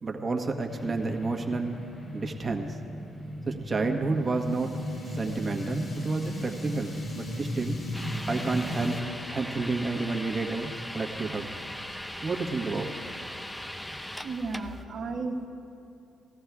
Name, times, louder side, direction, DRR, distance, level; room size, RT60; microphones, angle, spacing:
voice 1, 0.0-1.8 2.1-2.8 3.5-4.7 5.1-7.8 8.3-9.0 9.3-11.5 12.2-12.9, right 3 dB, 30° right, 2 dB, 1.2 m, -30 dB
sound 1, 0.7-9.0, equal, 35° left, 3.0 m, -36 dB
sound 2, 7.9-14.8, left 1 dB, 10° left, 0.5 m, -39 dB
voice 2, 14.2-15.5, right 3 dB, 60° right, -3 dB, 1.3 m, -34 dB
19.0 x 14.5 x 2.4 m, 2.8 s
cardioid pair, 90°, 0 cm